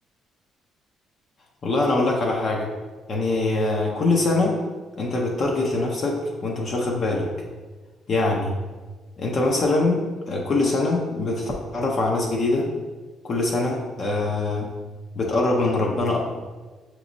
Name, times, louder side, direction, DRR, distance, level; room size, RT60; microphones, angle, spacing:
voice 1, 1.6-2.7 3.1-4.6 5.0-7.3 8.1-8.5 9.2-12.7 13.2-14.7 15.1-16.2, left 2 dB, 40° left, -1 dB, 0.5 m, -23 dB
6.0 x 3.0 x 2.6 m, 1.3 s
cardioid pair, 145°, 0 cm